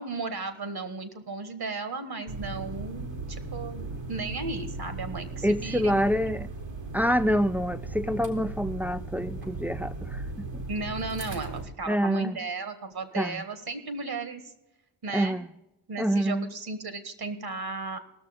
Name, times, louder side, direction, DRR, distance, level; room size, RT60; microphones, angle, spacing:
voice 1, 0.0-6.4 10.7-14.4 15.0-15.4 15.9-18.0, right 3 dB, 55° right, 1.7 m, -35 dB
sound 1, 2.3-11.6, right 3 dB, 70° right, 2.2 m, -37 dB
voice 2, 5.4-6.5 6.9-10.6 11.9-12.3 13.2-13.4 15.1-15.5 16.0-16.5, equal, 5° right, 0.4 m, -26 dB
17.5 x 6.6 x 5.2 m
cardioid pair, 55°, 46 cm